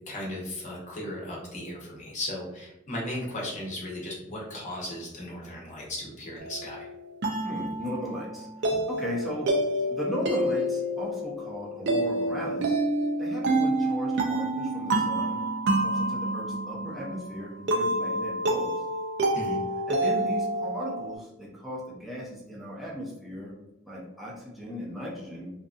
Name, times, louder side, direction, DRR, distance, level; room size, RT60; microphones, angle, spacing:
voice 1, 0.1-6.9 19.3-19.6, left 1 dB, 35° left, -3 dB, 0.8 m, -36 dB
sound 1, 6.4-21.1, right 1 dB, 60° right, 0.4 m, -28 dB
voice 2, 7.4-9.5 9.9-12.8 13.2-15.4 15.8-18.8 19.9-23.5 23.8-25.5, equal, ahead, -6 dB, 0.5 m, -37 dB
2.6 x 2.5 x 2.3 m, 0.94 s
head